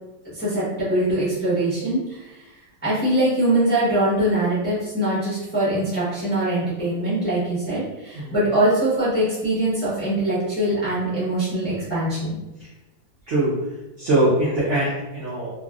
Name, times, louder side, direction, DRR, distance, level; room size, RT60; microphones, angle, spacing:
voice 1, 0.2-2.3 2.8-12.4, right 1 dB, 10° left, -9 dB, 0.7 m, -22 dB
voice 2, 14.0-15.5, right 1 dB, 65° right, -7 dB, 0.7 m, -22 dB
2.9 x 2.6 x 2.4 m, 1.0 s
omnidirectional pair, 2.1 m